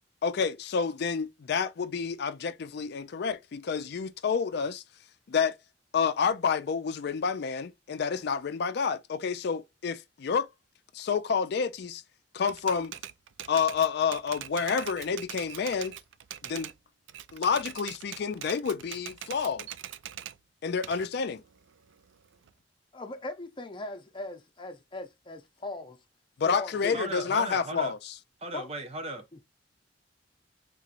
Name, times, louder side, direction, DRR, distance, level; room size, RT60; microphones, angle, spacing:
voice 1, 0.2-4.8 5.3-5.6 5.9-10.5 10.9-12.0 12.3-12.9 13.5-15.9 16.4-16.7 17.3-19.7 20.6-21.4 26.4-28.1, left 6 dB, 60° left, 0.4 m, -29 dB
Typewriter, 12.5-16.8 17.1-20.4 20.8-22.5, right 11 dB, 90° right, 0.4 m, -42 dB
voice 2, 22.9-26.0 26.5-27.0 28.5-28.7 29.3-29.4, left 2 dB, 25° left, 0.7 m, -39 dB
voice 3, 26.9-27.9 28.4-29.2, right 2 dB, 35° right, 0.9 m, -36 dB
3.7 x 3.0 x 2.5 m
head